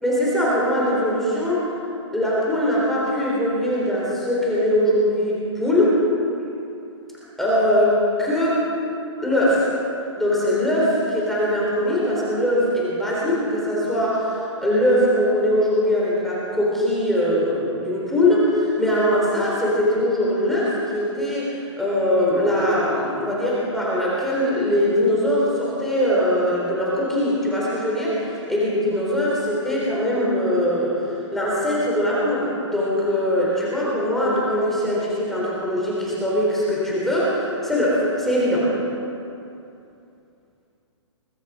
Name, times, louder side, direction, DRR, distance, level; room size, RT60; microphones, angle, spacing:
voice 1, 0.0-1.7 2.1-6.0 7.4-8.5 9.2-9.7 10.2-28.2 28.5-38.7, equal, ahead, -7 dB, 3.8 m, -21 dB
21.5 x 12.0 x 5.1 m, 2.6 s
hypercardioid pair, 145°, 16 cm